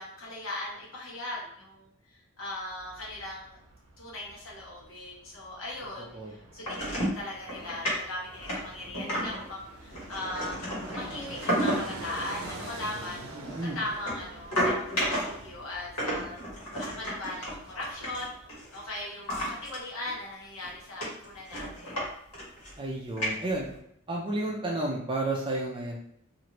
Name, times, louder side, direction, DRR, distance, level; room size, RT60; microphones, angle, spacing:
voice 1, 0.0-3.6 4.0-13.5 13.7-16.4 16.8-18.3 18.7-21.9, left 1 dB, 70° left, -3 dB, 1.0 m, -39 dB
Fixed-wing aircraft airplane, 2.5-19.5 19.8-19.9, right 2 dB, 75° right, 0.6 m, -47 dB
voice 2, 6.0-6.3 13.3-13.8 22.8-23.7 24.1-26.0, right 2 dB, 20° right, -2 dB, 0.4 m, -32 dB
sound 1, 6.6-7.2 7.5-7.9 8.4-9.5 9.9-12.0 12.3-12.6 13.4-15.5 16.0-18.8 19.3-19.8 20.1-20.2 20.6-20.7 21.0-22.1 22.3-22.8 23.2-23.7, equal, 90° left, 1.3 m, -32 dB
3.0 x 2.5 x 2.9 m, 0.71 s
head